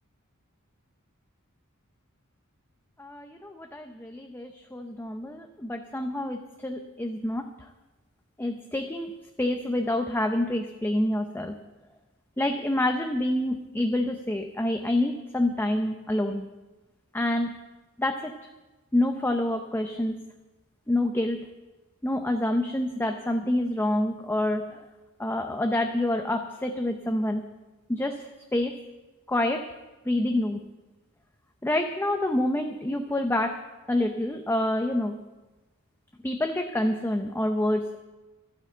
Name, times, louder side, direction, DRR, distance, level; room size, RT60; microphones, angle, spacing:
voice 1, 3.0-7.5 8.4-9.1 9.4-11.6 12.4-16.5 17.1-17.6 18.0-18.3 18.9-20.2 20.9-21.5 22.0-24.9 25.2-27.5 27.9-28.8 29.3-29.7 30.1-30.7 31.6-33.6 33.9-35.2 36.2-38.0, left 1 dB, 10° left, 5 dB, 0.6 m, -27 dB
12.0 x 9.9 x 7.9 m, 1.1 s
head